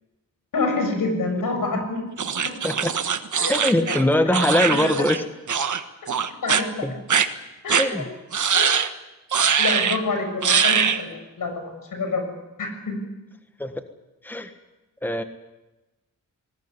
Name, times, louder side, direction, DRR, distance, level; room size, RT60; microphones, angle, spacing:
voice 1, 0.5-2.0 2.4-2.5 3.4-3.9 4.7-5.0 6.4-6.9 7.6-8.0 8.5-8.7 9.6-12.3 12.6-13.0, left 3 dB, 80° left, 5 dB, 6.9 m, -27 dB
sound 1, 2.2-5.2 5.5-5.8 6.1-6.6 7.1-7.3 7.7-7.9 8.3-8.9 9.3-10.0 10.4-11.0, right 7 dB, 65° right, 1.5 m, -22 dB
voice 2, 3.5-5.2 6.8-6.9 7.8-8.1 13.6-13.7 14.2-14.5 15.0-15.2, left 1 dB, 5° left, 8 dB, 1.5 m, -22 dB
20.0 x 19.5 x 9.8 m, 1.0 s
wide cardioid pair, 95°, 32 cm